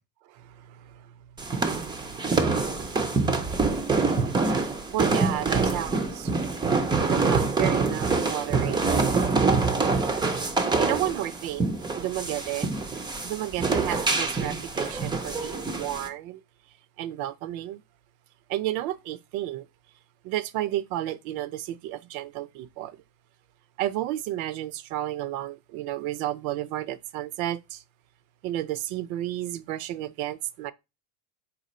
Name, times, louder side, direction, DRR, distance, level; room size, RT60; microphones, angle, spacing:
voice 1, 0.3-1.1 4.4-4.6 4.9-6.3 7.0-8.9 10.1-12.7 13.2-16.4 17.0-17.8 18.5-19.7 20.2-23.0 23.8-27.8 28.4-30.7, right 13 dB, 65° right, 0.5 m, -32 dB
sound 1, 1.4-16.1, right 4 dB, 10° right, 0.4 m, -25 dB
4.0 x 2.3 x 4.2 m
supercardioid pair, 100°, 48 cm